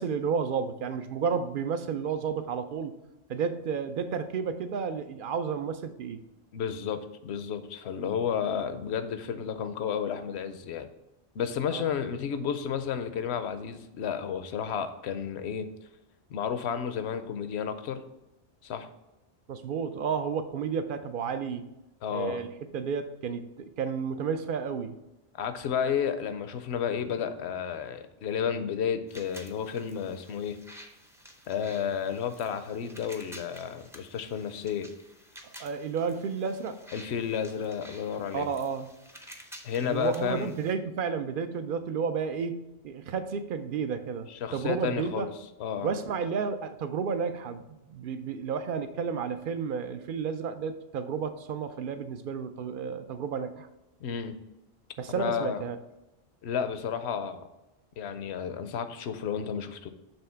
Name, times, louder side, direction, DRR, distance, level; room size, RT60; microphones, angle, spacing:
voice 1, 0.0-2.9 3.3-6.2 11.7-11.9 19.5-21.7 22.1-25.0 35.4-36.8 38.3-38.9 39.8-45.3 45.8-53.7 55.0-55.8, right 6 dB, 60° right, 9 dB, 0.5 m, -32 dB
voice 2, 6.5-10.9 11.3-15.7 16.3-18.0 18.6-18.9 22.0-22.4 25.3-30.6 31.5-34.9 36.9-38.5 39.6-40.5 44.3-45.3 45.6-45.9 54.0-54.4 55.1-55.6 56.4-57.5 58.0-59.9, left 7 dB, 65° left, 10 dB, 0.8 m, -32 dB
sound 1, 29.1-40.7, equal, 5° right, 0.3 m, -51 dB
7.1 x 3.3 x 5.6 m, 0.97 s
omnidirectional pair, 1.3 m